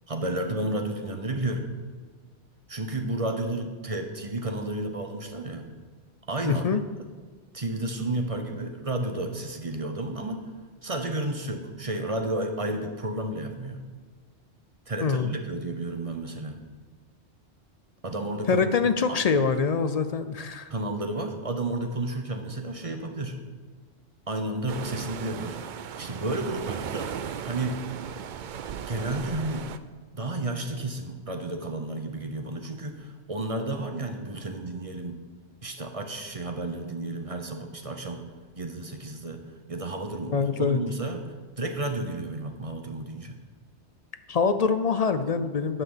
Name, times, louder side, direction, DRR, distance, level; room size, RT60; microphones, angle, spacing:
voice 1, 0.1-1.7 2.7-5.7 6.3-6.7 7.5-10.5 10.8-13.8 14.9-16.6 18.0-18.6 19.1-19.2 20.7-23.4 24.3-25.6 26.0-27.1 27.5-27.8 28.9-29.7 30.1-35.2 35.6-38.3 38.6-39.4 39.7-41.3 41.6-43.4, right 2 dB, 35° right, 5 dB, 0.9 m, -32 dB
voice 2, 6.5-6.8 15.0-15.3 18.5-20.7 40.3-40.8 44.3-45.8, left 5 dB, 50° left, 10 dB, 0.5 m, -24 dB
sound 1, 24.7-29.8, right 8 dB, 60° right, 0.5 m, -36 dB
9.9 x 5.9 x 7.2 m, 1.5 s
omnidirectional pair, 1.2 m